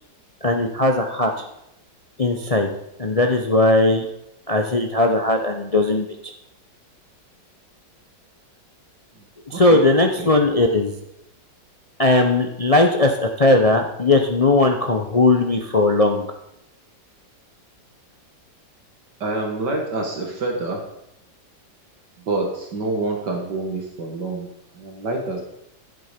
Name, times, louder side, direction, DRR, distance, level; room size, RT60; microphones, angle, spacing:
voice 1, 0.4-1.4 2.2-2.7 3.0-4.0 4.5-6.1 9.5-10.9 12.0-16.3, left 2 dB, 45° left, 4 dB, 0.4 m, -18 dB
voice 2, 9.5-9.8 10.2-10.3 19.2-20.8 22.3-24.5 24.8-25.4, right 2 dB, 65° right, 1 dB, 2.3 m, -27 dB
12.0 x 7.6 x 5.2 m, 0.83 s
omnidirectional pair, 2.0 m